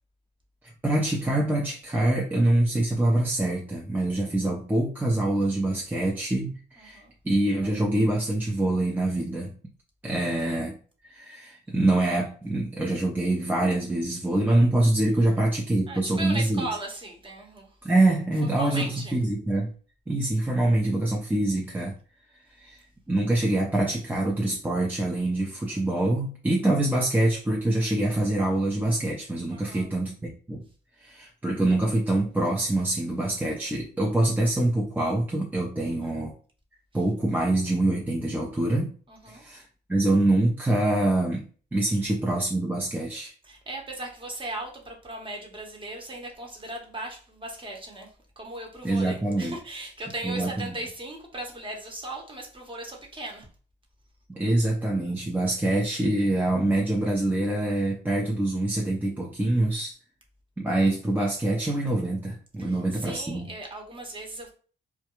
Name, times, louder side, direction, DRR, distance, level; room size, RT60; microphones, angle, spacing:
voice 1, 0.6-9.5 10.0-10.8 11.0-16.7 17.8-19.7 20.1-21.9 22.6-22.8 23.1-30.6 31.0-36.3 36.9-38.9 39.3-43.3 48.8-49.6 50.2-50.7 54.3-59.9 60.6-63.5, right 1 dB, 10° right, 0.5 m, -25 dB
voice 2, 6.8-7.1 15.9-19.2 29.5-29.9 35.9-36.1 39.1-39.4 41.9-42.0 43.4-53.5 62.6-64.5, right 2 dB, 25° right, 0.9 m, -38 dB
2.3 x 2.1 x 2.9 m
cardioid pair, 90°, 20 cm